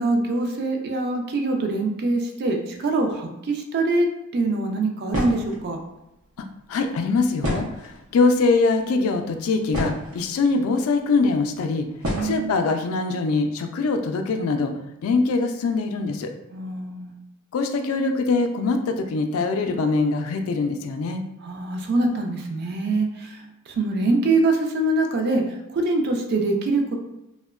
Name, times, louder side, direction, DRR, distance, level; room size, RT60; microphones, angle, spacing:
voice 1, 0.0-5.8 12.0-12.6 16.5-17.2 21.4-27.0, right 2 dB, 50° right, 3 dB, 0.3 m, -24 dB
sound 1, 5.1-5.6 7.4-8.1 9.0-9.1 9.4-10.3 11.2-11.3 12.0-12.4, equal, 90° right, 0.7 m, -28 dB
voice 2, 6.7-11.9 12.2-14.7 15.0-16.3 17.5-21.2, left 3 dB, 70° left, 5 dB, 0.3 m, -23 dB
2.8 x 2.1 x 2.3 m, 0.90 s
head